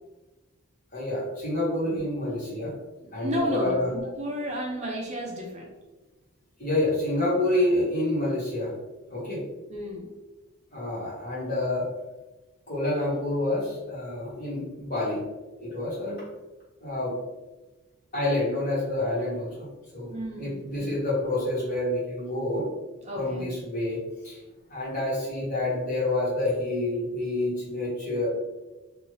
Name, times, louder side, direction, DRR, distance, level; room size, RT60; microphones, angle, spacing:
voice 1, 0.9-2.7 3.1-3.9 6.6-8.7 9.1-9.4 10.7-11.8 12.7-15.2 15.6-16.2 16.8-17.1 18.1-19.7 19.9-22.7 23.1-24.0 24.2-24.4 24.7-28.3, left 1 dB, 40° left, -8 dB, 1.4 m, -28 dB
voice 2, 3.0-5.7 9.7-10.1 20.1-20.9 23.0-23.5, equal, 35° right, -1 dB, 0.5 m, -32 dB
2.7 x 2.6 x 3.1 m, 1.1 s
head